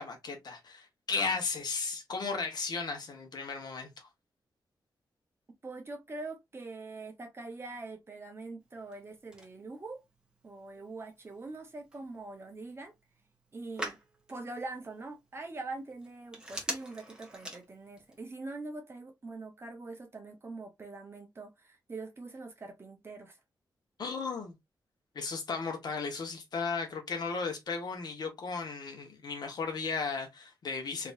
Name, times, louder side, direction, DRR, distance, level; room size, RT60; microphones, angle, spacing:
voice 1, 0.0-4.1 24.0-24.5 25.1-31.1, left 4 dB, 65° left, 1.3 m, -35 dB
voice 2, 5.6-10.0 10.4-12.9 13.5-14.0 14.3-23.4, right 3 dB, 30° right, 1.1 m, -43 dB
Telephone, 8.6-18.2, right 1 dB, 10° right, 1.2 m, -46 dB
3.5 x 3.0 x 2.6 m
wide cardioid pair, 105°, 8 cm